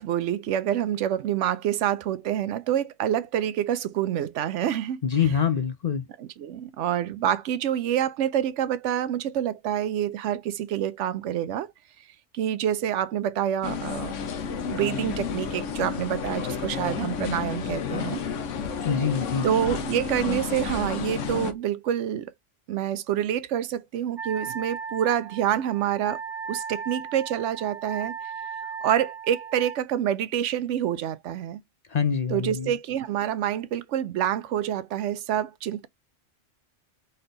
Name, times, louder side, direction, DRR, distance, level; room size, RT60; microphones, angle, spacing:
voice 1, 0.0-5.0 6.2-11.7 12.3-14.1 14.7-18.2 19.4-22.3 22.7-26.2 26.5-28.1 28.8-31.6 32.3-35.9, right 10 dB, 80° right, 0.9 m, -27 dB
voice 2, 5.0-6.1 18.8-19.5 31.9-32.7, left 7 dB, 55° left, 0.4 m, -25 dB
sound 1, 13.6-21.5, left 6 dB, 85° left, 1.1 m, -31 dB
Wind instrument woodwind instrument, 24.2-29.8, right 6 dB, 45° right, 1.3 m, -36 dB
4.1 x 3.3 x 3.9 m
omnidirectional pair, 1.3 m